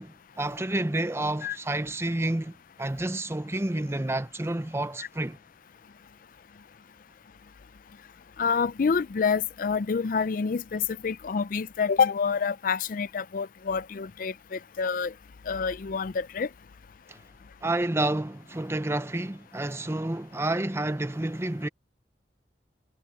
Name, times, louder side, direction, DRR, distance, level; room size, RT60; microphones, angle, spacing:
voice 1, 0.0-5.4 17.1-17.2 17.6-21.7, right 1 dB, 15° right, 0.6 m, -29 dB
voice 2, 8.4-15.1 15.5-16.5, left 5 dB, 50° left, 0.4 m, -27 dB
head